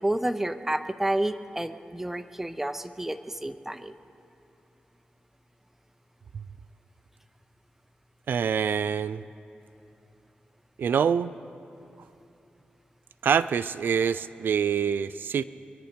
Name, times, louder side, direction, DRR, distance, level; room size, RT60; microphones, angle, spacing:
voice 1, 0.0-3.9, right 1 dB, 10° right, 10 dB, 0.6 m, -30 dB
voice 2, 8.3-9.2 10.8-11.3 13.2-15.4, right 7 dB, 75° right, 13 dB, 0.3 m, -25 dB
24.5 x 10.0 x 5.1 m, 3.0 s
cardioid pair, 70°, 3 cm